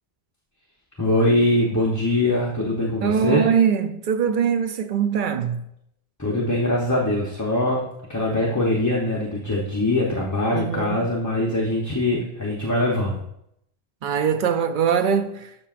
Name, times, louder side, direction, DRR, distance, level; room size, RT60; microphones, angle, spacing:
voice 1, 1.0-3.4 6.2-13.2, left 1 dB, 20° left, 0.8 m, -22 dB
voice 2, 3.0-5.6 10.5-11.1 14.0-15.5, right 7 dB, 55° right, 0.7 m, -22 dB
13.0 x 6.3 x 2.5 m
omnidirectional pair, 1.1 m